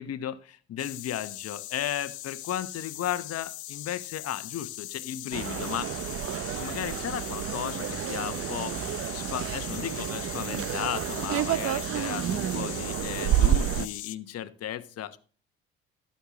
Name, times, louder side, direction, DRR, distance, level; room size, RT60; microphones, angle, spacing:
voice 1, 0.0-5.9 6.6-15.2, left 11 dB, 50° left, 12 dB, 1.1 m, -35 dB
sound 1, 0.8-14.2, left 16 dB, 90° left, 0.5 m, -40 dB
sound 2, 5.3-13.9, right 11 dB, 45° right, 0.7 m, -30 dB
13.0 x 9.2 x 3.0 m, 0.40 s
hypercardioid pair, 60°, 32 cm